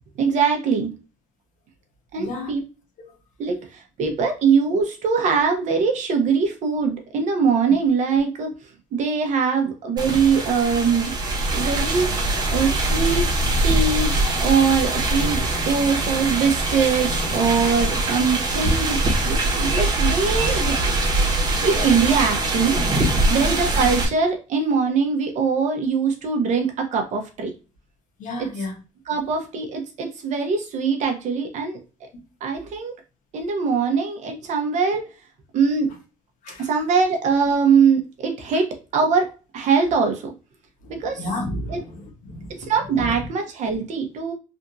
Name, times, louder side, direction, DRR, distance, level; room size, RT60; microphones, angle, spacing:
voice 1, 0.2-0.9 2.1-2.6 3.4-8.6 8.9-11.1 11.5-12.1 12.5-13.3 13.6-14.1 14.4-20.8 21.2-21.3 21.6-22.8 23.3-27.5 28.4-28.5 29.1-31.8 32.4-32.9 33.3-35.1 35.5-35.9 36.6-40.3 40.9-41.2 41.7-41.8 42.6-44.3, right 5 dB, 60° right, 0.9 m, -22 dB
voice 2, 2.2-2.5 23.2-23.5 28.2-28.7 36.4-36.7 40.8-42.5 42.9-43.1, left 1 dB, 75° left, 1.1 m, -32 dB
sound 1, 10.0-24.1, right 2 dB, 30° right, 1.2 m, -22 dB
3.5 x 2.6 x 2.6 m
cardioid pair, 135°, 14 cm